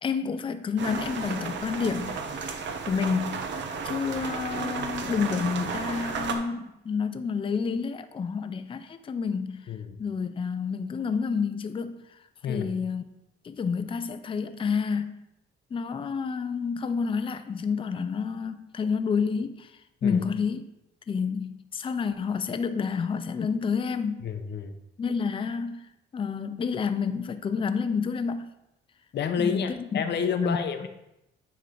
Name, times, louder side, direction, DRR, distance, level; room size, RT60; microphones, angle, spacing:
voice 1, 0.0-2.2 2.9-3.4 3.8-9.7 10.0-12.0 12.5-13.0 13.4-15.2 15.7-19.7 20.0-20.6 21.1-24.3 25.0-25.9 26.1-28.5 29.4-30.0 30.3-30.6, left 5 dB, 25° left, 10 dB, 0.4 m, -29 dB
sound 1, 0.8-6.4, right 5 dB, 65° right, 0.8 m, -33 dB
voice 2, 9.7-10.0 12.4-12.7 20.0-20.2 24.2-24.7 29.1-30.9, left 6 dB, 60° left, 8 dB, 0.7 m, -29 dB
9.4 x 3.2 x 3.8 m, 0.88 s
cardioid pair, 90°, 20 cm